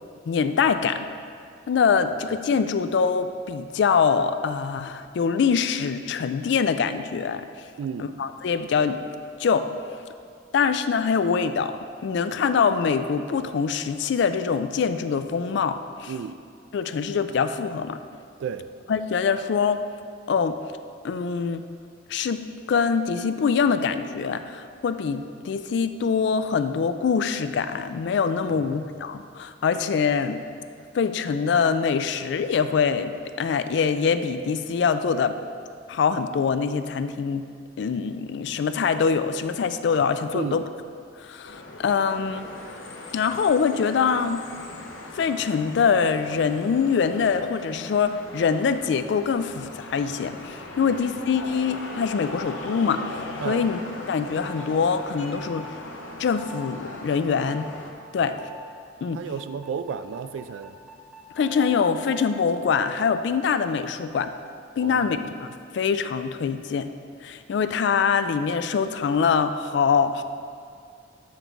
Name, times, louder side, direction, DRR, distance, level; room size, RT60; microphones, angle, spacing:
voice 1, 0.3-1.1 1.7-7.5 8.0-9.0 9.4-9.7 10.5-16.1 16.7-18.0 18.9-19.8 20.3-20.6 21.0-21.6 22.1-30.4 30.9-35.4 35.9-37.5 37.8-40.6 41.2-42.5 43.1-44.4 45.1-53.2 53.5-53.8 54.1-55.8 56.2-57.7 58.1-58.4 59.0-59.2 61.4-64.3 64.8-65.5 65.7-66.9 67.2-70.2, left 6 dB, 65° left, 10 dB, 0.3 m, -24 dB
voice 2, 7.8-8.1 16.1-16.4 18.4-18.7 28.5-28.8 40.3-40.6 50.7-51.0 53.4-53.7 58.2-58.4 59.1-60.8 64.8-65.2, right 6 dB, 80° right, 12 dB, 0.3 m, -33 dB
sound 1, 41.4-57.9, left 2 dB, 80° left, 0.7 m, -39 dB
sound 2, 53.4-53.7 54.4-54.7 55.4-55.7 56.4-56.7 57.4-57.7 58.4-58.7 59.4-64.5, right 2 dB, 5° right, 0.8 m, -45 dB
8.2 x 3.9 x 4.5 m, 2.2 s
head